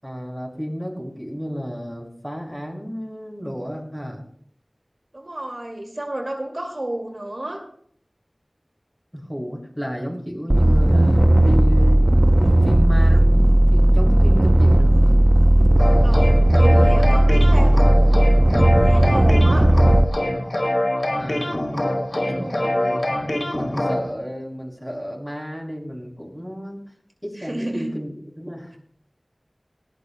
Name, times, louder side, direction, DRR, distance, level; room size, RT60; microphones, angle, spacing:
voice 1, 0.0-4.2 9.1-12.0 12.6-15.2 21.2-21.6 22.1-23.1 23.5-26.9 27.2-28.8, equal, ahead, -1 dB, 6.5 m, -32 dB
voice 2, 5.1-7.6 16.0-18.2 18.8-19.7 22.3-22.6 27.4-27.9, right 1 dB, 60° right, 1 dB, 2.2 m, -31 dB
sound 1, 10.5-20.0, right 1 dB, 40° right, 0.6 m, -15 dB
sound 2, 15.8-24.1, left 1 dB, 65° left, 3.1 m, -24 dB
19.5 x 19.0 x 2.2 m, 0.62 s
wide cardioid pair, 40°, 0 cm